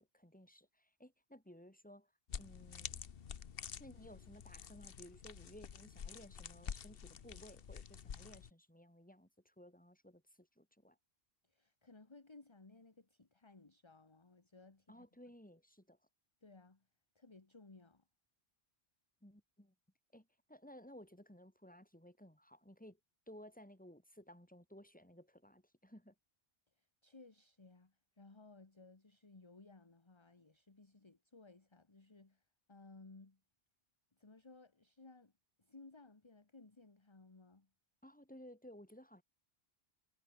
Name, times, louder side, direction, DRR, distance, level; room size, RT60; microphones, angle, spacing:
voice 1, 0.0-2.1 2.4-3.0 3.8-11.0 14.9-16.0 19.2-19.7 20.1-23.0 23.3-26.2 38.0-39.2, equal, 10° left, 3.6 m, -58 dB
sound 1, 2.3-8.5, left 7 dB, 65° left, 1.1 m, -49 dB
voice 2, 11.4-15.1 16.4-16.9 17.1-18.0 26.7-33.4 34.2-35.3 35.6-37.7, left 3 dB, 25° left, 1.5 m, -60 dB
omnidirectional pair, 1.1 m